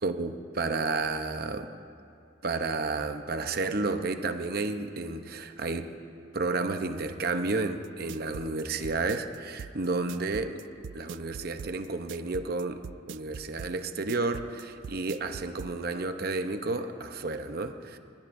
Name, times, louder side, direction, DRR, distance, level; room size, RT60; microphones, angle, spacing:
voice 1, 0.0-1.7 2.4-5.9 6.3-10.6 10.9-12.8 13.1-18.0, right 3 dB, 55° right, 8 dB, 0.8 m, -31 dB
sound 1, 7.8-15.7, right 7 dB, 75° right, 0.3 m, -42 dB
23.0 x 20.5 x 2.6 m, 2.6 s
head